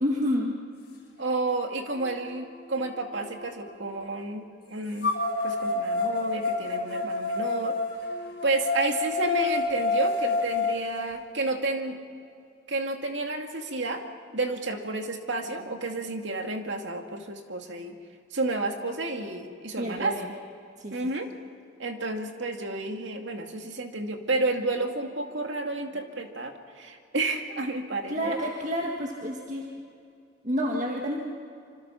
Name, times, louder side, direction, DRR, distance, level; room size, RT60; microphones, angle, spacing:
voice 1, 0.0-0.5 19.8-20.3 20.8-21.0 28.1-29.7 30.4-31.2, equal, 40° right, -1 dB, 1.8 m, -29 dB
sound 1, 1.2-1.3 1.9-3.8 5.0-11.0, left 3 dB, 55° left, 6.2 m, -29 dB
voice 2, 1.2-5.1 5.4-7.8 8.4-12.0 12.7-14.0 14.3-18.0 18.3-20.2 20.9-21.3 21.8-28.4, right 2 dB, 70° right, 4 dB, 2.3 m, -31 dB
26.5 x 25.5 x 5.8 m, 2.4 s
head